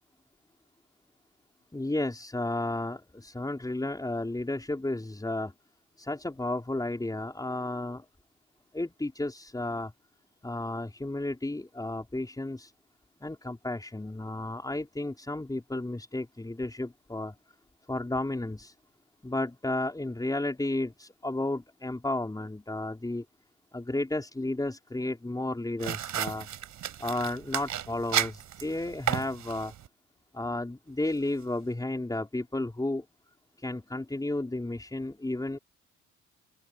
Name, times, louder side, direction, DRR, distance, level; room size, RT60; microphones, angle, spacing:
voice 1, 1.7-5.5 6.0-8.0 8.7-9.9 10.4-12.7 13.2-17.3 17.9-18.7 19.2-23.2 23.7-26.5 27.0-29.7 30.3-33.0 33.6-35.6, left 2 dB, 10° left, 4.9 m, -33 dB
sound 1, 25.8-29.9, right 10 dB, 70° right, 6.2 m, -33 dB
open air
cardioid pair, 90°, 30 cm